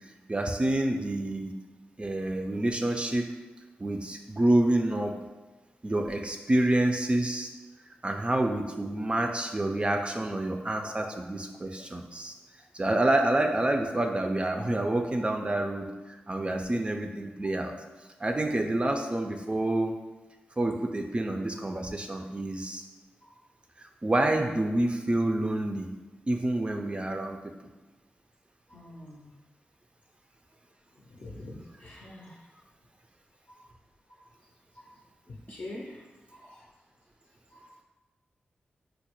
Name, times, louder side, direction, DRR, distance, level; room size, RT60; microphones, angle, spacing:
voice 1, 0.3-1.5 2.0-3.3 3.8-5.2 5.8-7.5 8.0-12.3 12.7-17.7 18.2-19.9 20.6-22.8 23.8-25.9 26.3-27.5, right 1 dB, 30° right, 3 dB, 0.3 m, -28 dB
voice 2, 28.7-29.3 31.1-32.3 35.5-36.0 36.5-36.6 37.5-37.7, left 1 dB, 65° left, -3 dB, 0.5 m, -43 dB
3.9 x 2.1 x 2.9 m, 1.2 s
cardioid pair, 40°, 4 cm